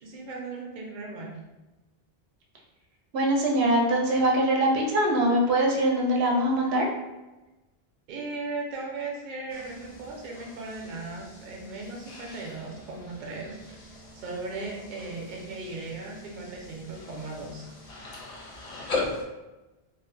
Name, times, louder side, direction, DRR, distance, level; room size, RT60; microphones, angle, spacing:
voice 1, 0.0-1.4 8.1-17.6, right 3 dB, 55° right, -2 dB, 0.6 m, -37 dB
voice 2, 3.1-6.9, right 1 dB, 90° right, -1 dB, 0.8 m, -23 dB
sound 1, 9.5-19.2, left 3 dB, 50° left, 0.5 m, -40 dB
2.4 x 2.1 x 2.5 m, 1.1 s
omnidirectional pair, 1.0 m